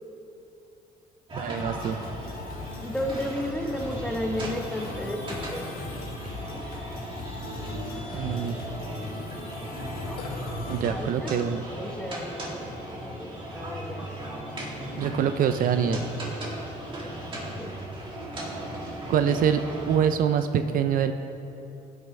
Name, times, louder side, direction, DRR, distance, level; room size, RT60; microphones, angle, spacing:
sound 1, 1.3-20.0, right 1 dB, 30° right, 2.6 m, -36 dB
voice 1, 1.3-2.0 8.1-8.6 10.7-11.6 15.0-16.0 19.1-19.6 19.9-21.1, right 8 dB, 55° right, 9 dB, 0.5 m, -25 dB
sound 2, 1.6-10.8, left 4 dB, 60° left, 1.3 m, -41 dB
voice 2, 2.8-5.7 6.5-6.7 10.9-11.3 11.7-12.6 12.8-14.1 17.5-17.8, left 1 dB, 5° left, 2 dB, 1.1 m, -33 dB
Burping eructation, 4.6-10.9, left 2 dB, 90° left, 1.3 m, -46 dB
15.5 x 8.8 x 3.2 m, 2.9 s
cardioid pair, 110°, 17 cm